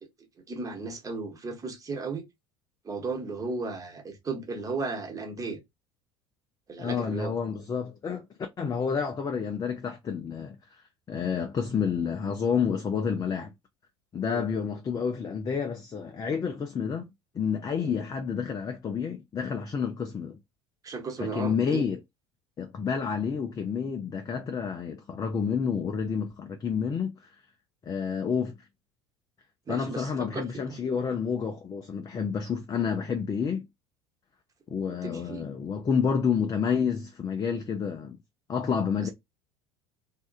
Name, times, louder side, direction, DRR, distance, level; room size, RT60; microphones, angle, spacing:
voice 1, 0.5-2.3 2.8-5.6 6.7-7.3 14.3-14.4 17.8-17.9 20.8-21.9 29.7-30.8 34.9-35.4 39.0-39.1, right 3 dB, 25° right, 1.0 m, -35 dB
voice 2, 6.8-8.3 8.6-10.6 11.1-13.5 14.1-17.1 17.3-20.4 21.2-22.0 22.6-27.1 27.8-28.5 29.7-33.7 34.7-38.2 38.5-39.1, left 6 dB, 25° left, 0.5 m, -29 dB
2.6 x 2.3 x 2.3 m
hypercardioid pair, 70°, 14 cm